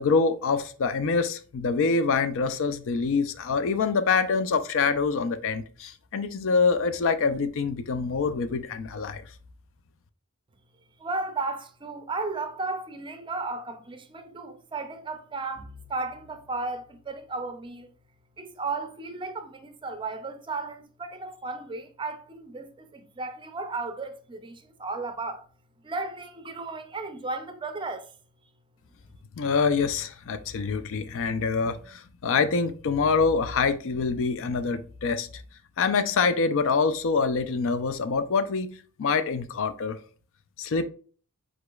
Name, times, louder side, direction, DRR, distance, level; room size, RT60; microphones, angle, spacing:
voice 1, 0.0-9.2 29.4-35.3 35.8-38.7 39.0-40.0 40.6-40.8, left 4 dB, 60° left, 0.4 m, -25 dB
voice 2, 11.0-17.9 18.4-25.5 25.8-28.1, right 3 dB, 20° right, 0.5 m, -34 dB
Bowed string instrument, 15.6-19.8, left 2 dB, 85° left, 1.5 m, -55 dB
4.9 x 4.0 x 2.3 m
head